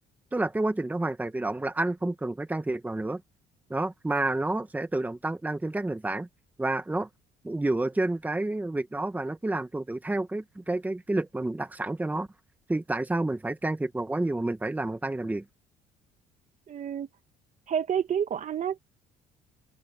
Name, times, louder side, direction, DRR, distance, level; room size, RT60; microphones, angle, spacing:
voice 1, 0.3-3.2 3.7-6.3 6.6-7.1 7.4-12.3 12.7-15.4, right 2 dB, 10° right, 1.5 m, -29 dB
voice 2, 16.7-17.1 17.7-18.8, right 8 dB, 45° right, 1.7 m, -29 dB
cardioid pair, 110°, 17 cm